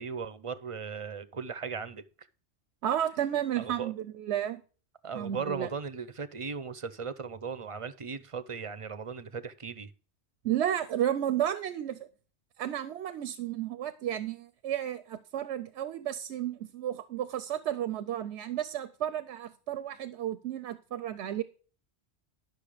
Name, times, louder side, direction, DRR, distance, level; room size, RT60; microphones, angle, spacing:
voice 1, 0.0-2.3 3.6-3.9 5.0-9.9, right 5 dB, 40° right, 0.5 m, -37 dB
voice 2, 2.8-4.6 5.1-5.7 10.4-12.1 12.6-21.4, right 11 dB, 90° right, 1.0 m, -32 dB
12.0 x 6.3 x 4.9 m
omnidirectional pair, 1.1 m